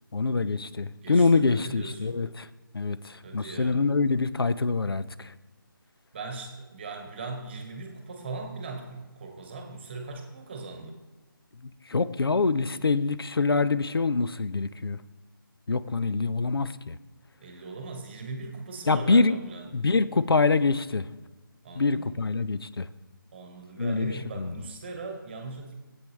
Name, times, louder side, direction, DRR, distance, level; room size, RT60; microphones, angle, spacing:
voice 1, 0.1-2.5 2.7-5.3 11.6-15.0 15.7-17.0 18.9-19.4 19.7-21.1 21.7-22.9 23.8-24.6, left 3 dB, 85° left, 14 dB, 0.5 m, -25 dB
voice 2, 1.0-2.2 3.2-3.8 6.1-11.0 17.4-19.7 21.6-22.2 23.3-25.7, right 3 dB, 30° right, 4 dB, 1.2 m, -39 dB
10.5 x 8.0 x 3.2 m, 1.2 s
figure-of-eight pair, 160°, 12 cm